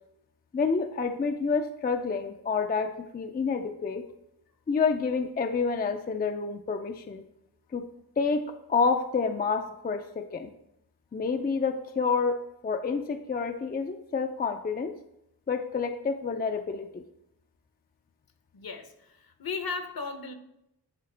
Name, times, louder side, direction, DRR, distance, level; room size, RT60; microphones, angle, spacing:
voice 1, 0.5-4.0 4.7-7.2 7.7-7.8 8.2-10.5 11.1-12.4 12.6-14.9 15.5-17.0, left 5 dB, 25° left, 7 dB, 0.3 m, -28 dB
voice 2, 18.5-18.9 19.2-20.3, left 4 dB, 60° left, 8 dB, 0.8 m, -35 dB
10.5 x 4.2 x 3.3 m, 0.83 s
wide cardioid pair, 125°, 40 cm